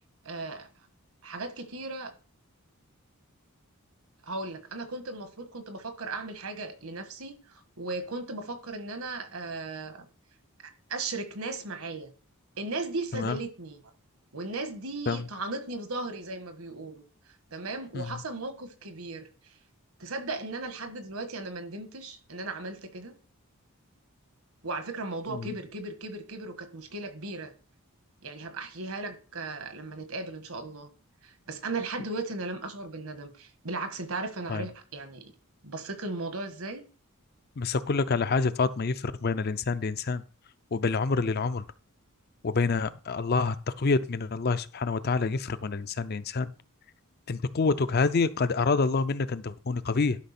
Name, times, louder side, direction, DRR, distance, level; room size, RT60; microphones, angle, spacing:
voice 1, 0.2-0.7 1.2-2.1 4.2-10.1 10.6-12.1 12.6-13.8 14.3-17.0 17.5-19.5 20.0-23.1 24.6-27.5 28.2-30.9 31.2-35.3 35.6-36.8, right 3 dB, 70° right, 8 dB, 1.5 m, -36 dB
voice 2, 37.6-40.2 40.7-41.6 42.4-46.5 47.3-50.2, left 4 dB, 45° left, 13 dB, 0.5 m, -27 dB
11.5 x 5.7 x 4.2 m, 0.37 s
head